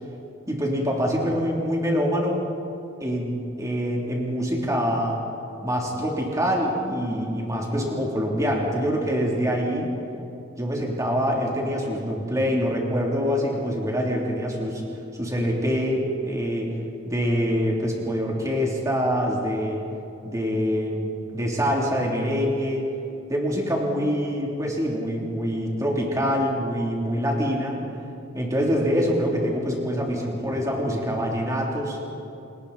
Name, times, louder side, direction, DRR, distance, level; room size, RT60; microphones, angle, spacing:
voice 1, 0.5-2.4 3.0-5.2 5.6-9.9 10.6-14.8 15.1-16.8 17.0-19.8 20.2-22.9 23.3-27.8 28.3-32.0, equal, 15° right, -2 dB, 3.5 m, -25 dB
29.0 x 20.0 x 4.4 m, 2.8 s
head